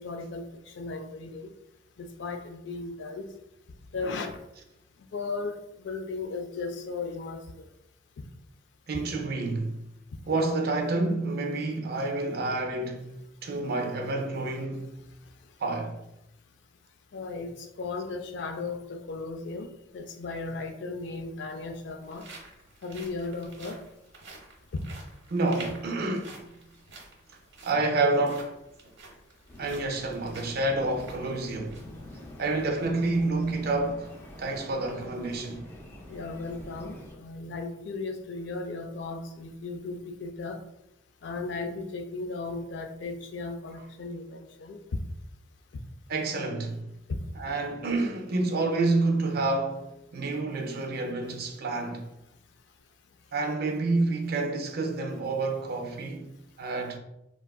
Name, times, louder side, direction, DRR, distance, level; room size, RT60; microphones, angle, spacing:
voice 1, 0.0-1.5 2.0-3.3 3.9-4.3 5.1-7.7 17.1-22.2 22.8-23.8 24.7-24.8 36.1-40.6 41.2-44.8 47.1-47.2, left 3 dB, 70° left, 0.4 m, -36 dB
voice 2, 8.9-9.7 10.3-13.1 13.4-14.9 15.6-16.0 25.3-26.4 27.6-28.5 29.6-31.8 32.4-34.1 34.4-35.6 46.1-46.8 47.3-49.9 50.1-52.1 53.3-56.3 56.6-57.0, right 2 dB, 55° right, 0.5 m, -28 dB
sound 1, 21.6-32.0 32.4-32.5 33.0-33.2, right 3 dB, 85° right, 1.0 m, -50 dB
sound 2, 29.5-37.2, left 1 dB, 15° left, 0.4 m, -46 dB
3.4 x 2.3 x 2.3 m
head